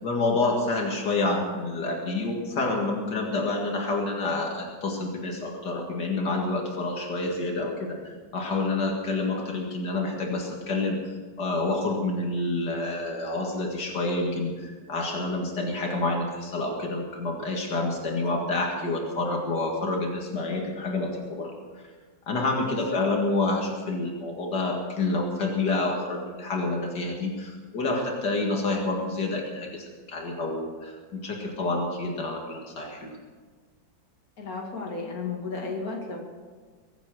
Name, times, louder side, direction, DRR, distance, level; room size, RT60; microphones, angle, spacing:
voice 1, 0.0-21.8 22.3-31.0 31.2-33.1, left 2 dB, 80° left, 0 dB, 2.7 m, -28 dB
voice 2, 18.0-18.4 22.6-23.0 34.4-36.2, left 3 dB, 60° left, 0 dB, 2.8 m, -34 dB
23.0 x 8.8 x 6.4 m, 1.5 s
omnidirectional pair, 1.8 m